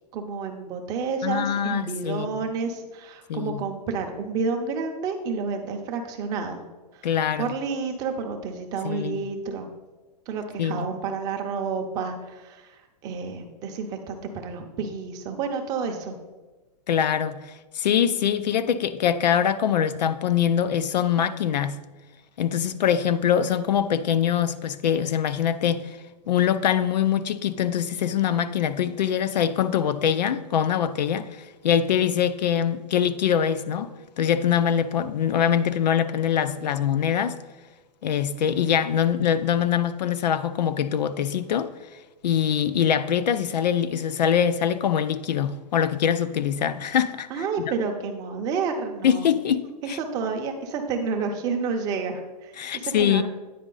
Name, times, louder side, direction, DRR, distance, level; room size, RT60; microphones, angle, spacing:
voice 1, 0.1-6.6 6.9-7.1 7.4-9.7 10.3-16.2 47.3-49.3 49.8-53.2, right 5 dB, 15° right, 0.5 m, -30 dB
voice 2, 1.2-2.3 3.3-3.6 7.0-7.5 8.8-9.3 10.6-10.9 16.9-21.8 22.4-26.0 26.3-33.9 34.2-37.4 38.0-41.7 42.2-47.4 49.0-50.0 52.6-53.2, left 9 dB, 90° left, 0.5 m, -23 dB
9.3 x 4.0 x 3.8 m
hypercardioid pair, 165°, 21 cm